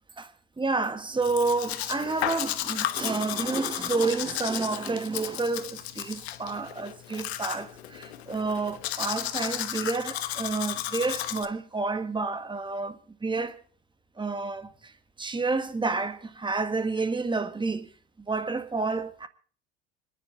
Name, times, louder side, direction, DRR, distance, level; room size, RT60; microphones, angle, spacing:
voice 1, 0.6-13.6 14.2-14.9 15.2-17.9 18.3-19.3, right 3 dB, 15° right, 1.8 m, -30 dB
Domestic sounds home sounds, 1.2-11.5, left 13 dB, 75° left, 1.2 m, -34 dB
26.0 x 10.5 x 4.3 m
hypercardioid pair, 75°, 32 cm